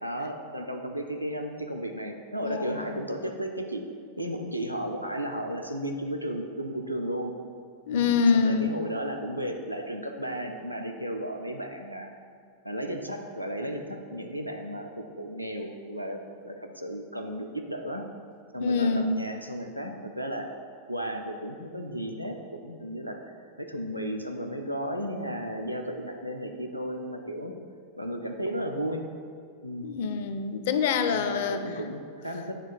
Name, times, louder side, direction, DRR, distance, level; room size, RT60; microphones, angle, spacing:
voice 1, 0.0-3.9 4.2-7.3 7.9-12.1 12.6-18.0 18.5-20.5 20.9-27.5 28.0-29.0 29.6-29.9 31.1-32.6, equal, 90° right, 3 dB, 0.6 m, -34 dB
voice 2, 2.4-3.0 7.9-8.7 18.6-19.2 29.8-31.6, left 5 dB, 55° left, 9 dB, 0.5 m, -25 dB
9.0 x 3.7 x 5.2 m, 2.2 s
figure-of-eight pair, 90°, 0 cm